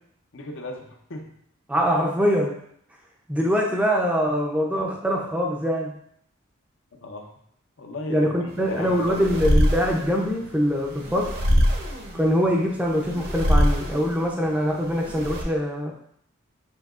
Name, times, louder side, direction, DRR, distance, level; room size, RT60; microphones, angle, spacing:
voice 1, 0.3-1.3 6.9-7.3 7.8-9.3, left 2 dB, 65° left, 3 dB, 0.7 m, -36 dB
voice 2, 1.7-2.6 3.3-6.0 8.1-11.4 12.1-15.9, equal, 5° right, -1 dB, 0.5 m, -23 dB
sound 1, 8.5-15.4, equal, 50° right, 0.7 m, -25 dB
7.2 x 2.8 x 2.4 m, 0.68 s
head